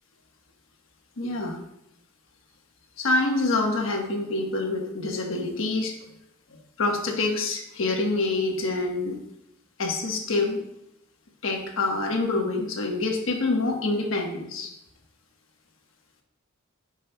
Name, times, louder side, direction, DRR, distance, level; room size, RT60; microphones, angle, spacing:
voice 1, 1.2-1.6 3.0-5.9 6.5-9.2 9.8-10.6 11.4-14.7, left 2 dB, 70° left, 2 dB, 1.2 m, -26 dB
10.5 x 5.3 x 2.2 m, 0.84 s
head